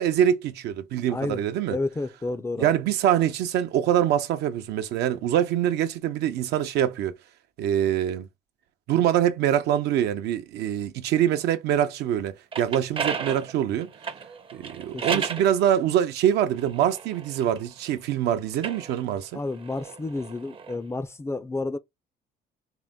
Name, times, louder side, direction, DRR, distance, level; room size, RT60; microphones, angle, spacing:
voice 1, 0.0-1.8 2.6-7.1 7.6-8.3 8.9-13.9 14.5-19.4, right 10 dB, 80° right, 0.7 m, -24 dB
voice 2, 1.1-1.4 1.7-2.8 14.9-15.2 19.3-21.8, left 2 dB, 15° left, 0.4 m, -31 dB
sound 1, 12.3-15.5 16.2-17.9 18.5-20.8, right 6 dB, 30° right, 0.6 m, -34 dB
4.5 x 2.1 x 3.7 m
cardioid pair, 110°, 17 cm